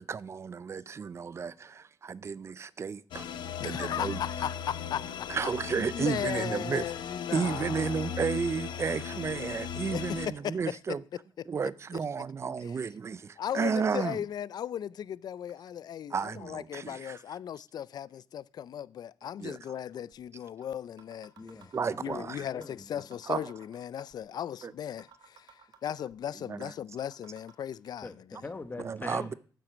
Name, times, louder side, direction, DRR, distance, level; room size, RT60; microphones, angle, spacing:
voice 1, 0.0-3.3 3.6-4.2 5.3-6.8 7.3-11.0 11.5-14.2 16.1-17.2 19.4-19.6 21.7-22.4 23.3-23.4 24.6-24.7 26.5-26.7 28.8-29.3, right 6 dB, 35° right, 0.5 m, -32 dB
sound 1, 3.1-10.3, left 7 dB, 85° left, 0.8 m, -38 dB
voice 2, 3.6-8.3 9.3-9.5 9.9-10.8 11.9-12.0 12.4-12.8 13.4-21.3 22.0-28.4, left 9 dB, 60° left, 0.4 m, -37 dB
sound 2, 20.1-20.2 20.6-20.7 21.0-22.2 22.6-22.7 23.0-24.2 24.6-24.7 25.0-26.2 26.6-26.7 27.0-28.0, right 7 dB, 65° right, 1.8 m, -55 dB
voice 3, 21.4-23.0 28.0-29.3, left 3 dB, 25° left, 1.2 m, -43 dB
9.1 x 7.6 x 6.1 m
cardioid pair, 115°, 8 cm